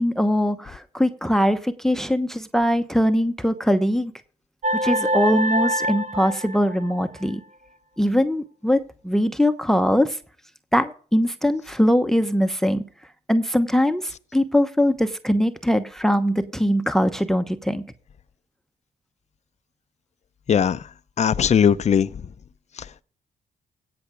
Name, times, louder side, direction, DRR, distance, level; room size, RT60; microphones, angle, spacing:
voice 1, 0.0-4.1 4.8-7.4 8.0-8.8 9.0-10.2 10.7-12.8 13.3-17.9, equal, 5° left, 0.9 m, -21 dB
sound 1, 4.6-7.3, equal, 50° right, 1.2 m, -25 dB
voice 2, 20.5-20.8 21.2-22.1, left 7 dB, 45° left, 0.6 m, -18 dB
17.0 x 5.8 x 5.1 m
cardioid pair, 80°, 16 cm